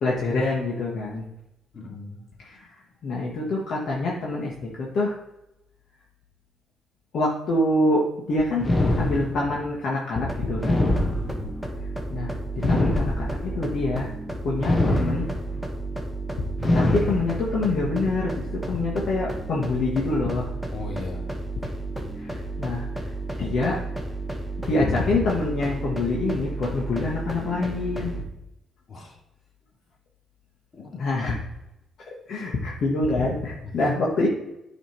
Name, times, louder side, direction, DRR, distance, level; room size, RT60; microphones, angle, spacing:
voice 1, 0.0-1.2 2.4-2.6 3.0-5.1 7.1-8.7 8.9-10.8 12.1-14.1 14.4-15.3 16.7-20.5 22.2-22.8 23.4-23.8 24.7-28.1 30.9-31.4 32.3-34.3, left 2 dB, 60° left, -4 dB, 1.3 m, -26 dB
voice 2, 1.7-2.2 11.1-11.4 20.7-21.3 28.9-29.2 30.7-30.9 33.6-33.9, left 3 dB, 45° left, -1 dB, 2.2 m, -38 dB
sound 1, 8.6-9.7 10.6-11.7 12.6-13.6 14.6-15.6 16.6-17.6, left 1 dB, 25° left, 1.0 m, -24 dB
sound 2, 10.2-28.2, right 2 dB, 5° left, 1.2 m, -32 dB
9.2 x 3.4 x 4.4 m, 0.89 s
cardioid pair, 90°, 0 cm